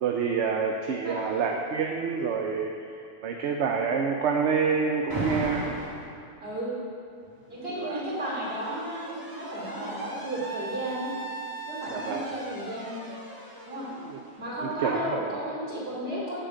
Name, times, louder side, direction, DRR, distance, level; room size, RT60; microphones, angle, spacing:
voice 1, 0.0-2.7 3.2-5.7 7.8-8.0 11.9-12.2 14.1-14.2 14.6-15.0, right 6 dB, 80° right, 2 dB, 0.9 m, -27 dB
voice 2, 1.0-1.4 6.4-6.7 7.5-11.1 11.7-13.0 13.7-13.9 14.4-16.5, right 1 dB, 60° right, -7 dB, 2.8 m, -33 dB
Alarm, 5.1-6.1 7.3-15.0, right 2 dB, 20° right, 1.4 m, -38 dB
7.0 x 6.4 x 7.2 m, 2.5 s
omnidirectional pair, 1.2 m